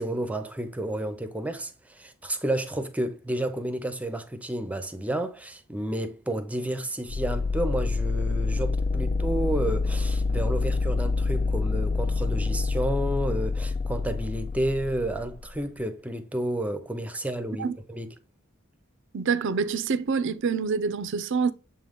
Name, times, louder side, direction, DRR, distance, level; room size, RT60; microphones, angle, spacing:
voice 1, 0.0-18.1, right 1 dB, 5° right, 0.6 m, -31 dB
sound 1, 7.1-15.8, left 3 dB, 30° left, 0.3 m, -27 dB
voice 2, 19.1-21.5, right 5 dB, 60° right, 0.5 m, -26 dB
7.0 x 3.8 x 3.6 m
head